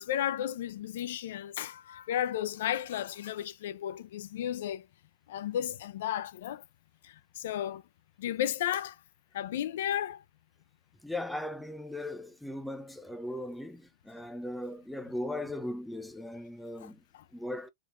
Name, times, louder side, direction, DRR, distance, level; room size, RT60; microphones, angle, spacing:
voice 1, 0.0-4.8 5.3-6.6 7.0-7.8 8.2-9.0 9.3-10.2 16.8-17.2, left 11 dB, 65° left, 0.5 m, -34 dB
voice 2, 11.0-17.0 17.3-17.7, left 1 dB, ahead, 0.4 m, -38 dB
3.8 x 3.4 x 2.5 m
supercardioid pair, 155°, 0 cm